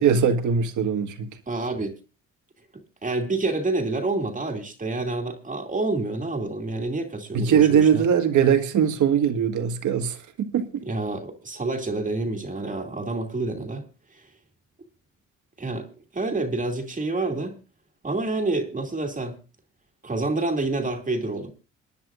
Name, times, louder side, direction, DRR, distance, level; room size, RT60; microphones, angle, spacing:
voice 1, 0.0-1.3 7.3-10.7, right 7 dB, 75° right, 1.8 m, -21 dB
voice 2, 1.5-2.0 2.7-8.1 10.9-13.8 14.1-14.2 15.6-15.9 16.1-17.6 18.0-19.4 20.0-21.5, right 2 dB, 25° right, 2.5 m, -28 dB
27.5 x 10.5 x 2.6 m
cardioid pair, 90°, 30 cm